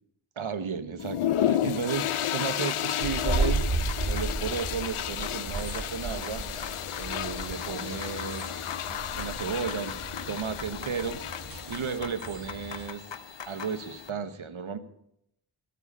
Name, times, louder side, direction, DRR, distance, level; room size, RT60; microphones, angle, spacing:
voice 1, 0.4-3.6 4.1-6.4 7.0-8.5 9.2-9.9 10.3-11.2 11.7-13.0 13.5-14.8, right 6 dB, 70° right, 10 dB, 1.4 m, -33 dB
sound 1, 1.0-12.0, left 11 dB, 80° left, 0.6 m, -32 dB
sound 2, 1.9-14.1, left 6 dB, 60° left, 1.0 m, -43 dB
sound 3, 3.0-12.9, right 3 dB, 45° right, 1.9 m, -34 dB
23.0 x 8.3 x 5.5 m, 0.76 s
wide cardioid pair, 65°, 49 cm